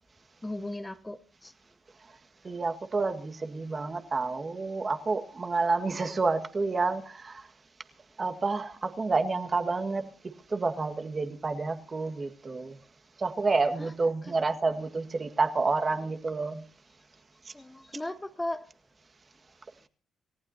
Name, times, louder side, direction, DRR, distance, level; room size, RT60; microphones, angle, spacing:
voice 1, 0.4-1.5 13.8-13.9 14.2-14.3 17.5-18.7, left 1 dB, 10° left, 1.0 m, -37 dB
voice 2, 2.4-7.5 8.2-10.1 10.5-12.8 13.2-16.6, right 3 dB, 30° right, 1.8 m, -29 dB
28.5 x 15.0 x 2.8 m
cardioid pair, 90°, 0 cm